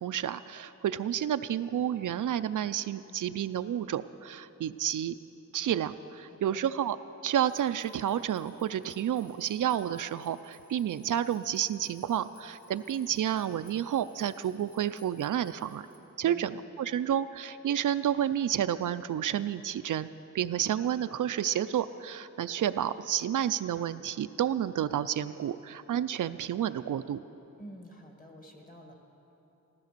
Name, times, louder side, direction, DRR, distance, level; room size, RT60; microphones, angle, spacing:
voice 1, 0.0-5.1 5.5-7.0 7.2-15.9 16.2-20.1 20.3-27.2, right 10 dB, 80° right, 12 dB, 0.4 m, -30 dB
voice 2, 6.2-6.7 16.2-16.7 27.6-28.9, equal, 25° left, 2 dB, 1.7 m, -49 dB
sound 1, 7.4-16.0, left 1 dB, 75° left, 2.6 m, -62 dB
15.0 x 13.0 x 6.7 m, 3.0 s
wide cardioid pair, 170°, 31 cm